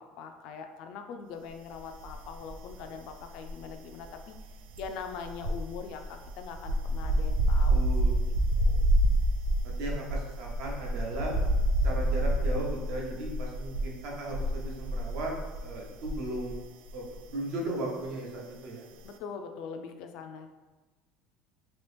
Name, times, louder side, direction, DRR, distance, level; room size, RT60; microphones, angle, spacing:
voice 1, 0.0-4.3 4.8-7.8 8.6-8.9 19.0-20.5, left 5 dB, 50° left, 6 dB, 0.3 m, -42 dB
sound 1, 2.0-2.8 3.1-16.6 16.9-17.1, right 1 dB, 90° right, 0.3 m, -28 dB
voice 2, 7.7-8.2 9.6-11.4 11.8-15.3 15.6-16.6 16.9-18.9, right 2 dB, 60° right, -1 dB, 0.7 m, -36 dB
2.9 x 2.8 x 3.3 m, 1.2 s
cardioid pair, 175°, 0 cm